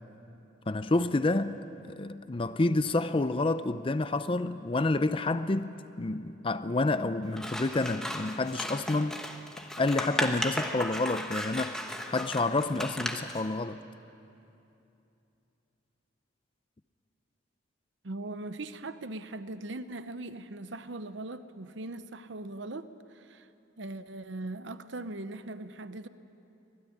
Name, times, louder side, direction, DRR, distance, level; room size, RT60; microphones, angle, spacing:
voice 1, 0.7-9.2 9.6-11.8 12.1-13.8, left 2 dB, 25° left, 0.5 m, -29 dB
Scissors, 7.3-13.4, equal, 5° left, 1.2 m, -35 dB
voice 2, 18.0-23.5 23.8-26.1, right 2 dB, 65° right, 0.9 m, -40 dB
25.0 x 19.0 x 9.9 m
head